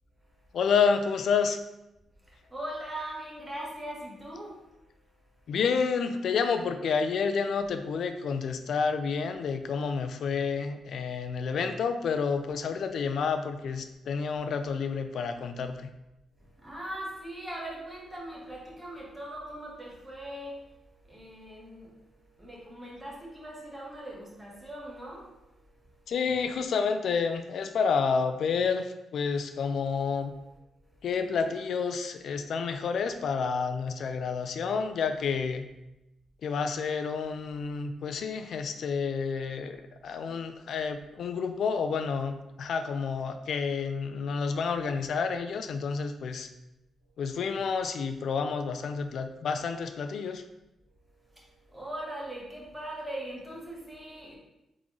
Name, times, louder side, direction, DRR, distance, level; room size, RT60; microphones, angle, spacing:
voice 1, 0.5-1.6 5.5-15.9 26.1-30.3 31.0-35.6 36.4-39.8 40.0-46.5 47.2-50.4, left 5 dB, 70° left, 8 dB, 0.4 m, -29 dB
voice 2, 2.2-4.8 5.3-5.5 16.3-26.1 30.8-31.0 37.7-37.8 47.0-47.1 50.8-54.4, right 1 dB, 10° right, -4 dB, 1.2 m, -41 dB
3.8 x 3.7 x 3.0 m, 0.92 s
cardioid pair, 115°, 0 cm